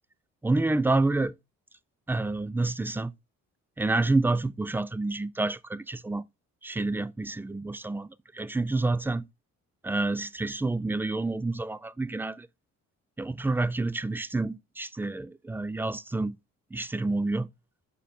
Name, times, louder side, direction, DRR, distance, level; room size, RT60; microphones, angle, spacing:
voice 1, 0.4-1.3 2.1-3.1 3.8-6.2 6.6-9.2 9.8-12.5 13.2-16.4 16.7-17.5, right 2 dB, 5° right, 0.3 m, -28 dB
6.5 x 4.4 x 3.5 m
cardioid pair, 90°, 30 cm